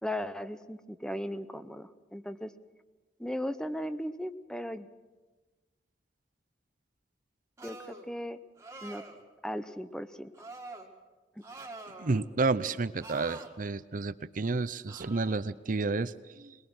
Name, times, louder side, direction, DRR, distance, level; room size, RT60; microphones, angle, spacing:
voice 1, 0.0-2.5 3.2-4.9 7.6-8.4 8.8-9.0 9.4-10.3, equal, 5° left, 12 dB, 0.7 m, -37 dB
sound 1, 7.6-8.1 8.6-9.2 10.3-10.9 11.4-12.3 13.0-13.5 14.9-15.4, right 2 dB, 15° right, 2.1 m, -46 dB
voice 2, 11.9-16.6, right 3 dB, 50° right, 15 dB, 0.6 m, -31 dB
22.0 x 21.0 x 6.2 m, 1.3 s
head